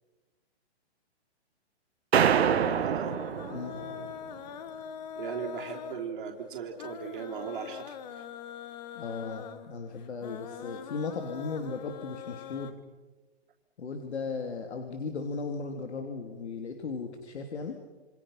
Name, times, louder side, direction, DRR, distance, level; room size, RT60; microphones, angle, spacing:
voice 1, 2.1-3.2 5.2-8.2, right 7 dB, 50° right, 1 dB, 4.0 m, -37 dB
sound 1, 2.1-4.1, right 8 dB, 70° right, 2.0 m, -26 dB
sound 2, 2.5-12.7, left 8 dB, 40° left, 1.7 m, -43 dB
voice 2, 8.9-12.7 13.8-17.8, left 4 dB, 75° left, 4 dB, 3.3 m, -36 dB
28.0 x 26.5 x 5.9 m, 1.2 s
hypercardioid pair, 160°, 33 cm